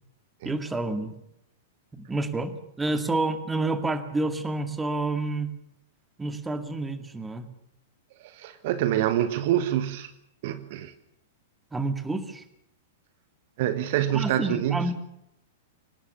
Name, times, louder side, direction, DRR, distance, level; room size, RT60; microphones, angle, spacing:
voice 1, 0.4-1.2 1.9-5.5 6.2-7.5 11.7-12.4 14.1-14.9, right 2 dB, 10° right, 9 dB, 2.2 m, -29 dB
voice 2, 8.2-10.1 10.4-10.9 13.6-14.9, right 11 dB, 50° right, 12 dB, 1.4 m, -26 dB
25.0 x 19.0 x 7.0 m, 0.79 s
figure-of-eight pair, 100°, 0 cm